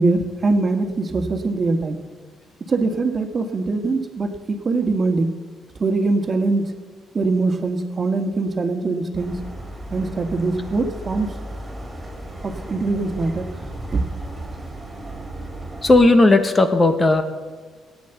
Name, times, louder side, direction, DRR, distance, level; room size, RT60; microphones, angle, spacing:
voice 1, 0.0-2.0 2.7-5.3 5.8-6.6 7.1-9.3 9.9-11.3 12.4-13.5 13.9-14.0, right 3 dB, 35° right, 6 dB, 1.8 m, -22 dB
sound 1, 9.1-16.1, right 1 dB, 15° right, 4.1 m, -35 dB
voice 2, 15.8-17.2, left 2 dB, 25° left, 8 dB, 1.3 m, -15 dB
14.5 x 9.7 x 8.1 m, 1.5 s
cardioid pair, 90°, 0 cm